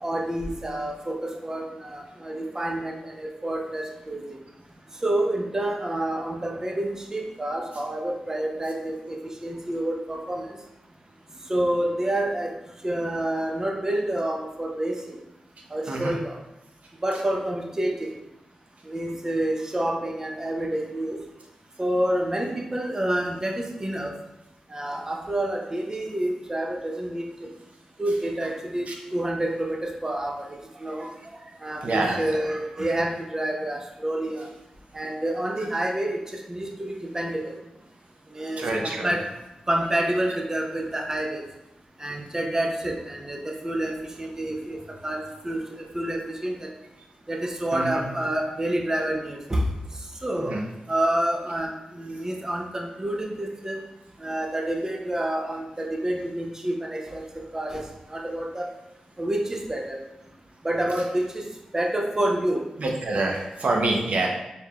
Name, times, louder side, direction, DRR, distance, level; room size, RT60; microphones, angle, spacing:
voice 1, 0.0-4.4 5.0-9.2 9.4-10.6 11.5-12.5 12.8-15.2 15.7-16.4 17.0-18.1 18.8-21.2 21.8-24.1 24.7-27.5 28.0-34.5 34.9-37.5 38.3-39.3 39.7-41.4 42.0-44.8 45.0-46.7 47.3-49.6 50.2-50.6 50.9-53.8 54.2-57.2 57.5-58.7 59.2-60.0 60.6-61.5 61.7-62.6, right 1 dB, 25° right, 1 dB, 0.6 m, -28 dB
voice 2, 31.8-32.4 38.6-39.2 47.7-48.0 50.5-50.6 62.8-64.3, right 2 dB, 70° right, 0 dB, 0.7 m, -26 dB
4.7 x 3.3 x 2.4 m, 0.91 s
wide cardioid pair, 75°, 2 cm